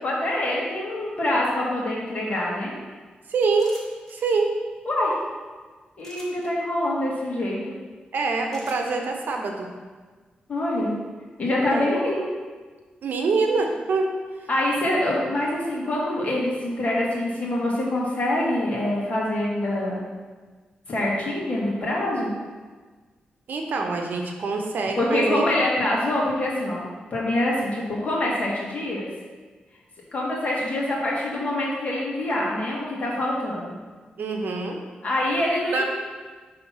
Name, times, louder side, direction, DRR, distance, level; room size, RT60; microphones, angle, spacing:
voice 1, 0.0-2.7 4.8-5.1 6.0-7.7 10.5-10.9 11.4-12.2 14.5-20.0 20.9-22.3 25.0-29.1 30.1-33.8 35.0-35.8, left 1 dB, 50° left, -4 dB, 1.7 m, -25 dB
voice 2, 3.3-3.7 4.1-4.5 8.1-9.7 11.7-11.9 13.0-14.1 23.5-25.4 34.2-34.8 35.7-35.8, right 4 dB, 75° right, 3 dB, 0.8 m, -25 dB
sound 1, 3.6-4.1 6.0-6.5 8.5-8.9, equal, 10° left, 1.3 m, -45 dB
5.8 x 3.4 x 5.6 m, 1.4 s
cardioid pair, 100°, 3 cm